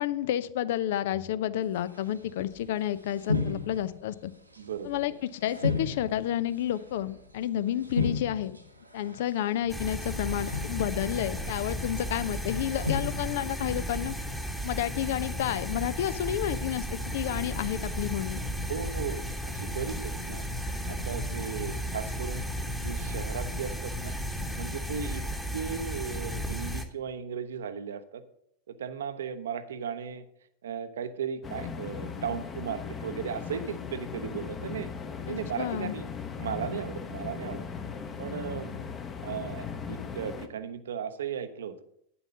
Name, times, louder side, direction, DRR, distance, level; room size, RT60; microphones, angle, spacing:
voice 1, 0.0-4.3 4.8-8.6 8.9-14.1 14.6-18.4 35.3-35.9, left 11 dB, 55° left, 15 dB, 0.5 m, -30 dB
sound 1, 1.9-2.1 2.4-2.7 3.1-4.1 4.5-5.1 5.5-7.4 7.8-9.3 9.6-10.0 10.4-11.0 11.7-12.3 12.7-13.3, left 3 dB, 90° right, 1.1 m, -33 dB
voice 2, 4.6-5.0 18.7-20.4 20.9-22.4 22.8-24.1 24.5-25.2 25.5-28.2 28.7-30.2 30.6-34.9 35.2-36.1 36.4-37.7 38.2-38.8 39.2-41.8, right 7 dB, 65° right, 12 dB, 0.8 m, -36 dB
sound 2, 9.7-26.8, equal, ahead, 1.2 m, -34 dB
sound 3, 31.4-40.5, left 6 dB, 25° left, 1.0 m, -38 dB
9.6 x 7.0 x 5.5 m, 0.71 s
figure-of-eight pair, 85°, 0 cm